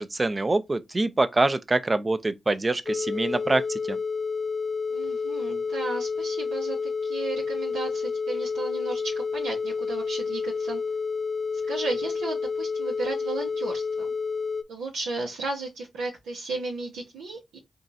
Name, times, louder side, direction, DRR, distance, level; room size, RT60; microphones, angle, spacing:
voice 1, 0.0-4.0, right 2 dB, 35° right, 0.6 m, -25 dB
sound 1, 2.9-14.6, left 5 dB, 50° left, 0.4 m, -30 dB
voice 2, 4.9-10.8 11.7-14.1 14.7-17.6, right 3 dB, 90° right, 1.0 m, -34 dB
3.7 x 2.5 x 4.0 m
supercardioid pair, 45°, 0 cm